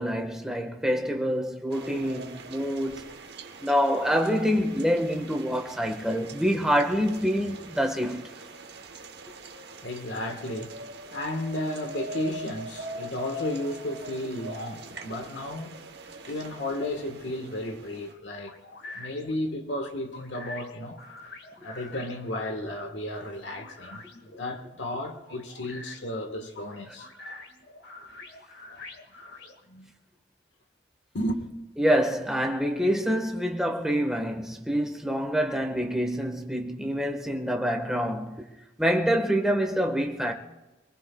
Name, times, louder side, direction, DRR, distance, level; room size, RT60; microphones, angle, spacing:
voice 1, 0.0-3.0 3.6-8.4 27.2-27.3 31.8-38.5 38.8-40.3, equal, 5° right, 1.5 m, -26 dB
sound 1, 1.7-18.1, right 1 dB, 60° right, 1.2 m, -42 dB
voice 2, 9.8-10.7 11.1-15.8 16.3-18.6 18.9-21.0 21.6-24.0 24.4-27.1 31.1-31.5, left 1 dB, 75° left, 1.5 m, -33 dB
sound 2, 18.4-29.9, left 2 dB, 60° left, 2.0 m, -46 dB
26.0 x 19.5 x 2.4 m
head